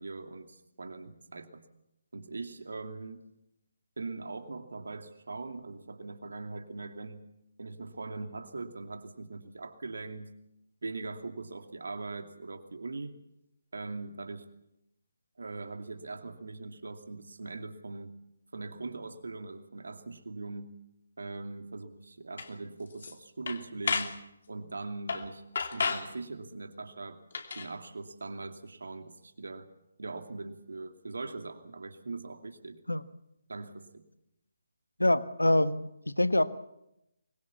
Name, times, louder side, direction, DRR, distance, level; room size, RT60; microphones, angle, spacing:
voice 1, 0.0-1.6 2.1-3.3 4.0-7.2 7.6-10.3 10.8-13.1 13.7-14.4 15.4-18.1 18.5-20.8 21.2-25.4 25.7-27.2 27.5-29.7 30.0-32.8 33.5-34.0, right 3 dB, 65° right, 6 dB, 2.6 m, -41 dB
sound 1, 22.4-22.5 22.9-23.1 23.5-24.2 25.1-25.3 25.6-26.1 27.3-27.7, left 5 dB, 50° left, 2.8 m, -32 dB
voice 2, 35.0-36.4, left 1 dB, 85° left, 12 dB, 1.4 m, -25 dB
24.5 x 21.5 x 7.1 m, 0.85 s
figure-of-eight pair, 145°, 0 cm